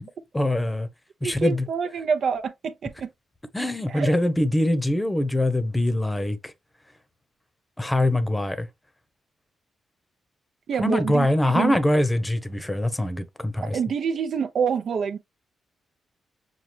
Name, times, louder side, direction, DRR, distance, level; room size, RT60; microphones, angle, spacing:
voice 1, 0.0-0.9 1.2-1.7 3.5-6.5 7.8-8.7 10.8-13.8, left 1 dB, 15° left, 0.8 m, -23 dB
voice 2, 1.2-3.1 3.9-4.1 10.7-11.3 11.5-11.7 13.7-15.2, right 6 dB, 70° right, 0.7 m, -26 dB
5.9 x 2.3 x 3.2 m
cardioid pair, 65°, 0 cm